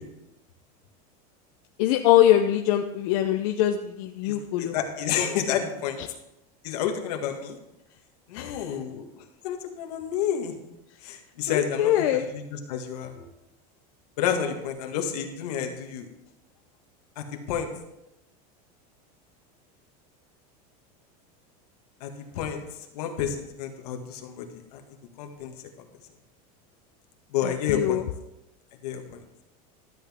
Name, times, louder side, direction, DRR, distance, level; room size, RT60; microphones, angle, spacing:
voice 1, 1.8-4.8 8.3-8.8 11.5-12.3 27.4-28.0, left 12 dB, 60° left, 5 dB, 0.6 m, -23 dB
voice 2, 4.6-6.0 6.6-7.6 8.3-9.0 9.4-10.5 11.0-13.1 14.2-16.1 17.2-17.7 22.0-22.1 22.3-22.6 22.9-24.8 25.2-25.5 27.3-28.0 28.8-29.2, left 8 dB, 75° left, 4 dB, 1.7 m, -30 dB
13.0 x 8.1 x 3.6 m, 0.87 s
supercardioid pair, 170°, 20 cm